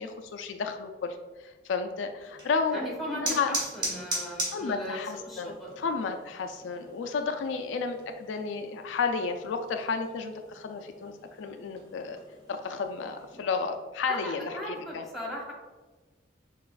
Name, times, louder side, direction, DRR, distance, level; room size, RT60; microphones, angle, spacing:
voice 1, 0.0-3.6 4.3-11.1 11.4-12.2 12.5-15.0, left 4 dB, 75° left, 6 dB, 0.3 m, -32 dB
sound 1, 2.2-13.4, right 1 dB, 20° right, 1.1 m, -40 dB
voice 2, 2.7-5.0 5.2-5.7 14.1-15.5, equal, ahead, -4 dB, 1.0 m, -38 dB
6.8 x 2.4 x 2.4 m, 1.2 s
head